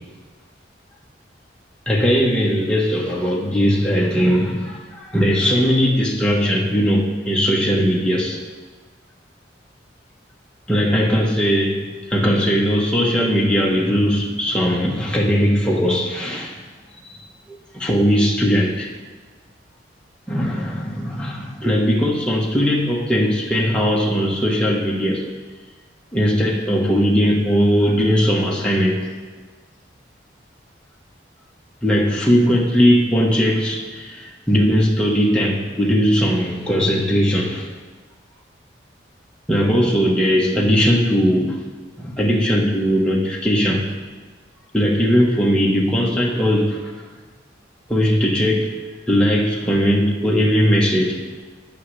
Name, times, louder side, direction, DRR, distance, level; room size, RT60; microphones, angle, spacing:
voice 1, 1.9-8.4 10.7-16.6 17.5-18.9 20.3-25.3 26.1-29.1 31.8-37.7 39.5-41.5 42.0-43.9 44.7-46.9 47.9-48.7 49.1-51.2, equal, 5° left, -3 dB, 1.2 m, -19 dB
12.0 x 8.7 x 3.3 m, 1.4 s
head